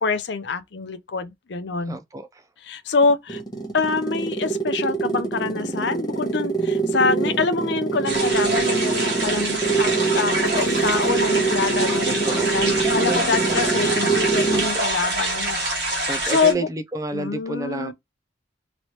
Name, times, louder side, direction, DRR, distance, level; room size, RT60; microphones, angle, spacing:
voice 1, 0.0-2.0 2.6-3.4 3.7-16.7 17.1-17.9, left 4 dB, 70° left, 0.5 m, -25 dB
voice 2, 1.9-2.4 12.1-12.7 13.0-13.6 16.1-17.9, right 2 dB, 20° right, 0.3 m, -31 dB
sound 1, 3.0-14.8, right 4 dB, 20° left, 0.9 m, -24 dB
sound 2, 8.0-16.5, right 2 dB, 65° right, 1.4 m, -25 dB
Gunshot gunfire, 10.5-11.7, left 3 dB, 40° left, 1.2 m, -45 dB
3.0 x 3.0 x 2.7 m
head